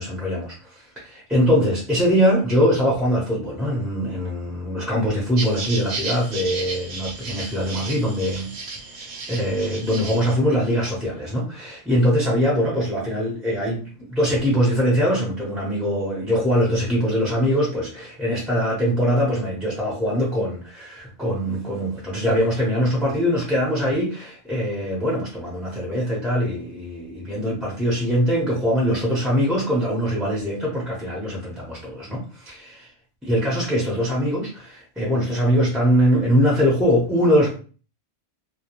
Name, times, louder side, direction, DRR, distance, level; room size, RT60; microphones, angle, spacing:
voice 1, 0.0-8.5 9.0-32.9 33.2-37.5, equal, ahead, -5 dB, 0.7 m, -22 dB
sound 1, 5.4-10.3, right 3 dB, 70° right, 0.3 m, -33 dB
2.3 x 2.1 x 2.9 m, 0.37 s
omnidirectional pair, 1.3 m